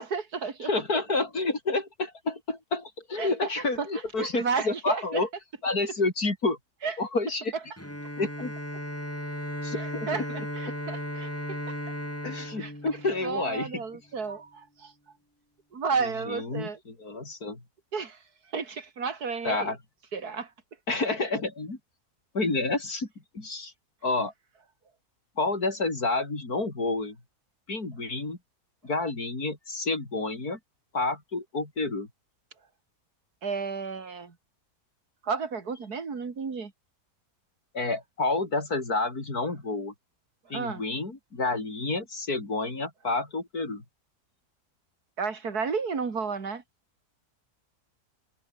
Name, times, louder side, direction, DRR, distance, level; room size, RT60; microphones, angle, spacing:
voice 1, 0.0-0.7 3.2-3.3 3.8-3.9 4.2-5.2 6.8-6.9 9.8-11.8 12.6-12.7 13.2-14.9 15.7-16.8 17.9-18.2 18.5-19.7 20.1-20.5 33.4-34.3 35.2-36.7 40.5-40.8 45.2-46.6, right 5 dB, 75° right, 3.0 m, -32 dB
voice 2, 0.6-5.3 5.6-6.6 7.0-7.5 8.2-8.5 9.6-10.2 12.2-13.8 16.0-17.6 19.4-19.8 20.9-21.8 22.3-23.1 23.3-23.7 24.0-24.3 25.4-27.2 27.7-28.4 28.8-30.6 30.9-32.1 37.7-39.9 40.5-43.8, left 3 dB, 70° left, 5.2 m, -29 dB
Bowed string instrument, 7.8-13.8, equal, 10° left, 7.3 m, -36 dB
omnidirectional pair, 1.7 m